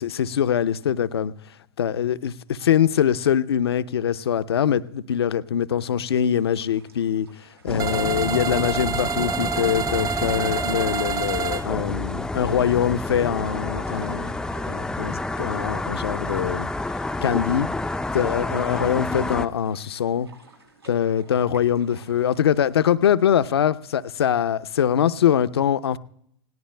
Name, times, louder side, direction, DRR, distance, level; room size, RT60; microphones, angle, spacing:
voice 1, 0.0-1.3 1.8-7.3 7.6-14.3 14.7-16.7 17.2-17.7 18.1-20.3 20.9-26.0, left 9 dB, 75° left, 15 dB, 0.6 m, -23 dB
sound 1, 6.1-22.9, right 3 dB, 90° right, 8.0 m, -54 dB
sound 2, 7.7-19.5, left 2 dB, 5° left, 0.5 m, -29 dB
sound 3, 7.8-11.6, right 7 dB, 25° right, 0.8 m, -27 dB
29.0 x 18.5 x 2.2 m, 0.70 s
figure-of-eight pair, 95°, 13 cm